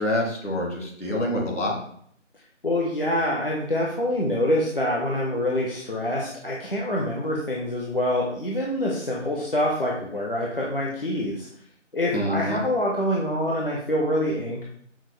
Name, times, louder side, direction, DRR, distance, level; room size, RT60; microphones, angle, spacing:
voice 1, 0.0-1.8 12.1-12.6, left 1 dB, 65° left, -3 dB, 1.9 m, -26 dB
voice 2, 2.6-11.5 11.9-14.6, left 1 dB, 45° left, -3 dB, 0.6 m, -25 dB
5.8 x 2.4 x 3.3 m, 0.64 s
figure-of-eight pair, 170°, 38 cm